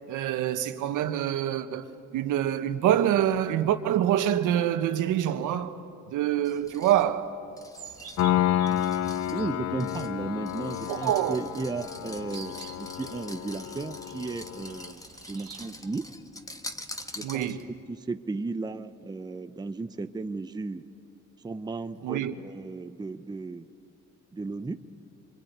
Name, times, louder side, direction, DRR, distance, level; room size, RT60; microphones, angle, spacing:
voice 1, 0.1-1.9 2.1-5.8 6.1-7.4 10.9-11.4 17.2-17.7 22.0-22.3, right 11 dB, 75° right, 1.3 m, -26 dB
sound 1, 6.4-17.8, left 1 dB, 10° left, 1.3 m, -45 dB
sound 2, 7.8-15.7, right 8 dB, 50° right, 2.3 m, -50 dB
Piano, 8.2-14.9, left 12 dB, 55° left, 0.6 m, -30 dB
voice 2, 9.3-16.1 17.1-17.6 17.9-20.8 21.4-23.7 24.3-24.8, right 3 dB, 15° right, 0.7 m, -35 dB
25.5 x 23.0 x 9.4 m
cardioid pair, 110°, 31 cm